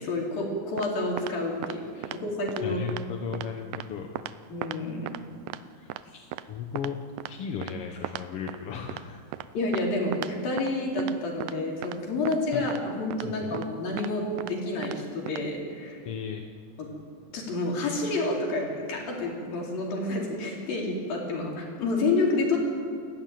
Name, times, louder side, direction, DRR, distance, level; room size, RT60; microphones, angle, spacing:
voice 1, 0.0-2.8 4.5-5.0 9.5-16.1 16.8-16.9 17.3-22.6, left 2 dB, 90° left, -1 dB, 5.8 m, -29 dB
sound 1, 0.8-0.9 1.2-1.3 1.6-1.8 2.0-2.2 2.5-2.6 2.9-3.0 3.3-3.5 3.7-3.9 4.2-4.3 4.6-4.8 5.1-5.2 5.5-5.6 5.9-6.0 6.3-6.4 6.8-6.9 7.2-7.3 7.6-7.7 8.0-8.2 8.5-8.6 8.9-9.0 9.3-9.5 9.7-9.8 10.1-10.3 10.6-10.7 11.0-11.1 11.4-11.5 11.8-12.0 12.3-12.4 12.7-12.8 13.1-13.3 13.5-13.7 14.0-14.1 14.4-14.5 14.8-15.0 15.3-15.4, right 14 dB, 85° right, 2.4 m, -36 dB
voice 2, 2.6-4.1 5.7-9.2 12.5-12.6 13.2-13.6 16.0-16.5, left 7 dB, 60° left, 3 dB, 1.6 m, -36 dB
28.5 x 14.5 x 9.4 m, 2.3 s
omnidirectional pair, 4.0 m